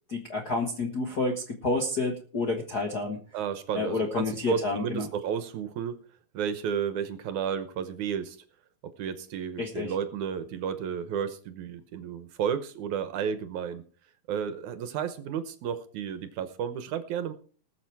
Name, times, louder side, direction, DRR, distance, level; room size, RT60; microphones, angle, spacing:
voice 1, 0.1-3.2 3.7-5.1 9.6-9.9, left 3 dB, 50° left, 2 dB, 1.1 m, -29 dB
voice 2, 3.3-6.0 6.3-8.4 8.8-13.8 14.3-17.3, right 8 dB, 70° right, 11 dB, 2.1 m, -32 dB
20.0 x 6.9 x 4.6 m, 0.42 s
omnidirectional pair, 3.9 m